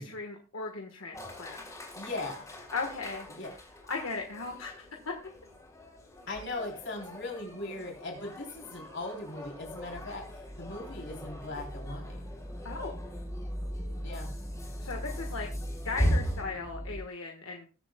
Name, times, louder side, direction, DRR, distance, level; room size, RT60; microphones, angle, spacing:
voice 1, 0.0-1.6 2.7-3.3 3.9-5.1 12.6-12.9 14.8-15.5 15.8-17.7, left 4 dB, 80° left, 2 dB, 1.4 m, -37 dB
sound 1, 1.1-16.4, equal, 15° left, 3.3 m, -39 dB
voice 2, 2.0-2.5 3.3-3.5 6.3-12.2 14.0-14.3, left 2 dB, 60° left, 0 dB, 3.6 m, -39 dB
sound 2, 9.3-17.0, equal, 10° right, 0.7 m, -40 dB
21.0 x 7.6 x 2.3 m, 0.34 s
head